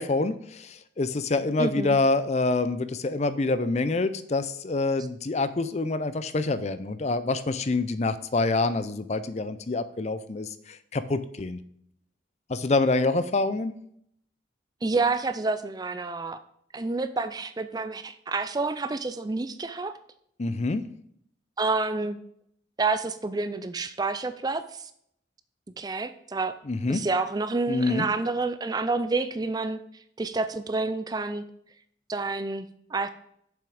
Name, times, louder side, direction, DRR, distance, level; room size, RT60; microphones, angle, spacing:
voice 1, 0.0-11.6 12.5-13.7 20.4-20.8 26.7-27.0 27.7-28.1, left 3 dB, 35° left, 12 dB, 0.5 m, -26 dB
voice 2, 1.6-2.0 14.8-16.4 16.7-20.0 21.6-22.2 22.8-24.9 25.8-26.6 26.9-29.8 30.2-31.4 32.1-33.1, right 3 dB, 20° right, 12 dB, 0.4 m, -28 dB
7.1 x 5.9 x 5.0 m, 0.69 s
head